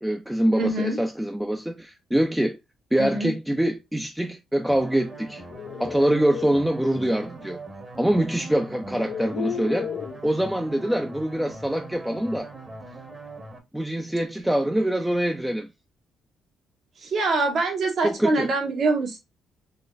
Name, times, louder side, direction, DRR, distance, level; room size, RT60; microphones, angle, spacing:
voice 1, 0.0-2.6 2.9-5.4 5.8-7.6 8.0-9.9 10.2-12.5 13.7-15.7 18.0-18.5, right 1 dB, 5° right, 0.4 m, -24 dB
voice 2, 0.5-1.0 3.0-3.3 17.0-19.2, right 3 dB, 60° right, 1.5 m, -24 dB
sound 1, 4.7-13.6, right 2 dB, 30° right, 1.2 m, -41 dB
sound 2, 5.2-6.6 8.0-8.1 8.8-10.2, left 9 dB, 75° left, 0.4 m, -34 dB
3.9 x 3.1 x 2.5 m
cardioid pair, 90°, 0 cm